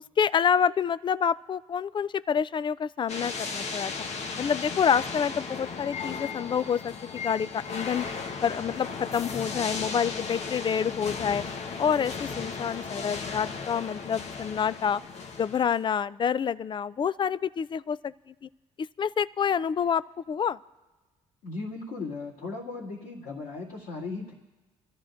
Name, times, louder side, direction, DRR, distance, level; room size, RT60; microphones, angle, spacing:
voice 1, 0.2-3.9 4.4-8.1 8.4-11.4 11.8-15.0 15.4-18.1 18.4-18.5 19.0-20.6, left 7 dB, 35° left, 18 dB, 0.4 m, -27 dB
sound 1, 3.1-15.8, left 4 dB, 55° left, 1.1 m, -36 dB
voice 2, 21.4-24.3, left 3 dB, 80° left, -10 dB, 2.5 m, -37 dB
26.5 x 13.0 x 2.6 m, 1.2 s
supercardioid pair, 75°, 14 cm